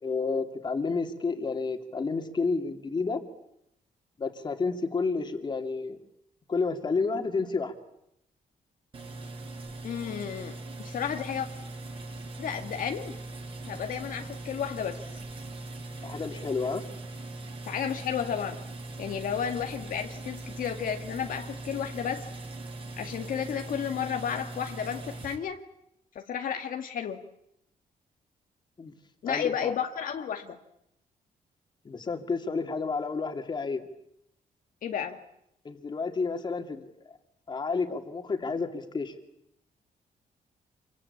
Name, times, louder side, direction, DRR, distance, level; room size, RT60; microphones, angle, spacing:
voice 1, 0.0-3.2 4.2-6.0 6.5-7.7 16.0-16.8 28.8-29.0 29.3-29.7 31.8-33.8 35.6-36.8 37.5-39.1, left 4 dB, 30° left, 6 dB, 2.6 m, -30 dB
sound 1, 8.9-25.3, right 2 dB, 35° right, 5.3 m, -40 dB
voice 2, 9.8-11.5 12.4-13.1 13.6-15.0 17.6-18.6 19.0-22.2 23.0-25.6 26.1-27.3 29.2-30.6 34.8-35.2, left 8 dB, 65° left, 5 dB, 1.6 m, -32 dB
27.5 x 23.5 x 8.6 m, 0.79 s
wide cardioid pair, 165°, 15 cm